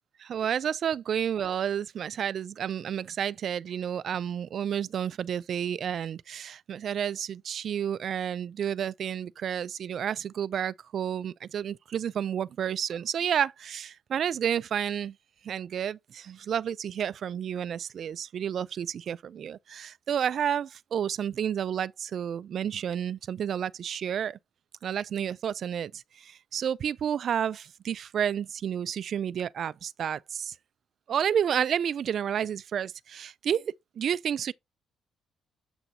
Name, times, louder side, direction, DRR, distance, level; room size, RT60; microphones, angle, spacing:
voice 1, 0.2-15.1 15.4-24.4 24.8-30.5 31.1-34.5, right 8 dB, 55° right, 0.3 m, -31 dB
7.8 x 6.1 x 2.7 m
cardioid pair, 115°, 0 cm